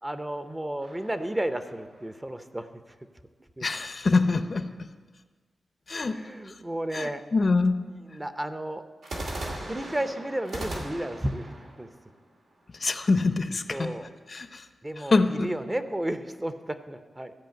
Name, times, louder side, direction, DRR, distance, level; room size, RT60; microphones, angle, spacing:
voice 1, 0.0-2.7 3.6-3.7 6.1-7.5 7.9-8.8 9.6-11.9 13.7-14.1 14.8-17.3, right 1 dB, 15° right, 9 dB, 0.6 m, -33 dB
sound 1, 0.8-2.3 9.0-13.0, right 1 dB, 85° right, 2.4 m, -39 dB
voice 2, 3.6-4.7 5.9-6.2 6.9-7.8 12.8-13.9 14.3-14.6 15.1-15.5, left 3 dB, 45° left, 9 dB, 0.6 m, -24 dB
13.5 x 5.0 x 7.7 m, 1.4 s
wide cardioid pair, 90°, 0 cm